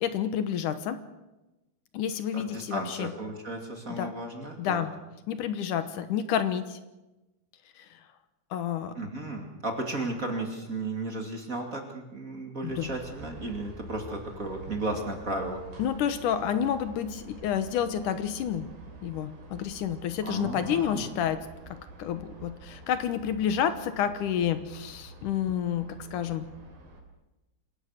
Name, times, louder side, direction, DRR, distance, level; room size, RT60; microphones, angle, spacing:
voice 1, 0.0-1.0 1.9-3.1 3.9-4.1 4.6-4.9 5.3-6.8 8.5-8.9 12.6-12.9 15.8-18.7 19.0-21.4 22.0-26.5, left 9 dB, 75° left, 11 dB, 2.6 m, -29 dB
voice 2, 2.3-4.9 9.0-15.6 20.2-21.1, right 2 dB, 25° right, 3 dB, 2.5 m, -34 dB
sound 1, 12.7-27.0, right 2 dB, 70° right, 4.9 m, -47 dB
27.0 x 17.0 x 6.6 m, 1.1 s
omnidirectional pair, 3.7 m